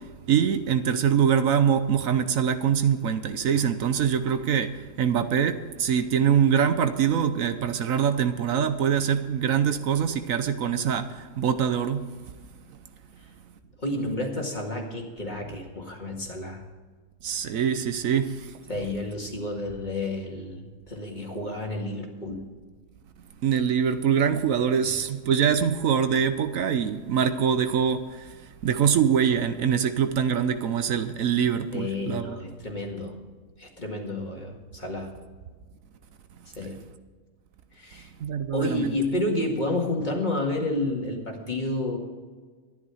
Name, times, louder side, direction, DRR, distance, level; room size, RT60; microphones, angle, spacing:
voice 1, 0.3-12.0 17.2-18.5 23.4-32.4 38.2-38.9, right 8 dB, 70° right, 10 dB, 1.1 m, -24 dB
voice 2, 13.8-16.6 18.7-22.5 24.8-24.9 31.7-33.2 33.6-35.1 36.5-36.8 37.7-38.1 38.5-42.0, left 2 dB, 30° left, 1 dB, 2.0 m, -30 dB
13.0 x 10.5 x 4.8 m, 1.5 s
omnidirectional pair, 1.5 m